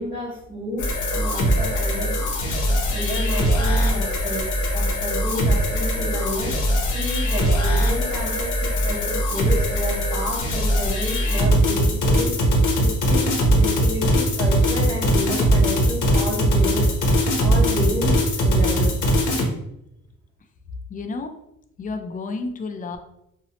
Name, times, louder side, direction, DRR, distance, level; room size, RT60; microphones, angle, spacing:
voice 1, 0.0-4.5 4.7-16.9 17.4-19.0, equal, 20° right, -5 dB, 0.6 m, -31 dB
sound 1, 0.8-19.5, equal, 80° left, 0.7 m, -21 dB
voice 2, 20.9-21.3 21.8-23.0, left 3 dB, 30° left, 6 dB, 0.4 m, -30 dB
2.7 x 2.0 x 2.7 m, 0.80 s
cardioid pair, 90°, 30 cm